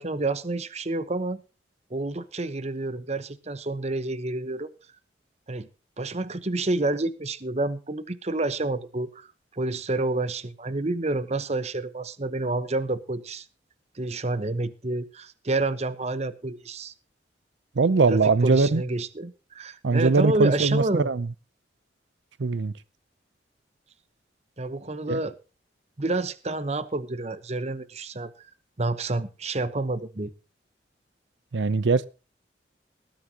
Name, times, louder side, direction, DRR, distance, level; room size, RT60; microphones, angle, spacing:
voice 1, 0.0-1.4 1.9-4.7 5.5-5.7 6.0-9.3 9.5-13.5 13.9-16.9 18.1-21.1 24.6-25.4 26.0-28.3 28.8-30.3, right 2 dB, 35° right, 1.0 m, -29 dB
voice 2, 17.8-18.8 19.8-21.3 22.4-22.7 25.1-25.2 31.5-32.0, right 4 dB, 90° right, 0.6 m, -21 dB
19.0 x 13.0 x 2.9 m
head